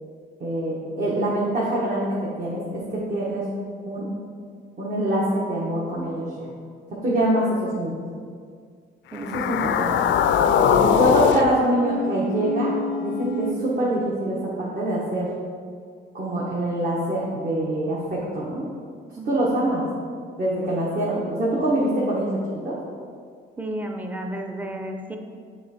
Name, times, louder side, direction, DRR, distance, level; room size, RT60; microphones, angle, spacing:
voice 1, 0.4-3.5 3.9-4.1 4.8-6.4 7.0-8.0 9.2-10.0 10.6-12.7 13.0-15.3 16.1-18.6 19.2-19.8 20.4-22.8, right 1 dB, 45° right, -7 dB, 1.3 m, -25 dB
sound 1, 9.1-13.5, left 7 dB, 70° left, 0.4 m, -22 dB
voice 2, 9.1-9.4 19.2-19.3 23.6-25.2, right 1 dB, 10° right, 4 dB, 0.6 m, -32 dB
7.2 x 3.5 x 4.3 m, 2.1 s
cardioid pair, 90°, 20 cm